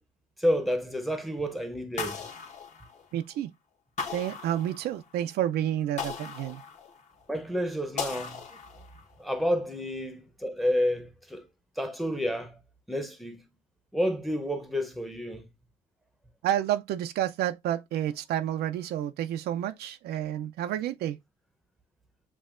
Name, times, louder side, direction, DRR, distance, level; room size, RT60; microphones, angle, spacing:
voice 1, 0.4-2.3 7.3-8.4 9.2-11.5 11.8-12.6 12.9-13.4 13.9-15.5, equal, ahead, 0.7 m, -30 dB
sound 1, 2.0-3.3 4.0-5.2 6.0-7.2 8.0-9.1, left 5 dB, 45° left, 1.1 m, -38 dB
voice 2, 3.1-3.5 4.1-6.6 16.4-21.2, right 11 dB, 70° right, 0.5 m, -30 dB
7.4 x 2.8 x 2.5 m
cardioid pair, 110°, 17 cm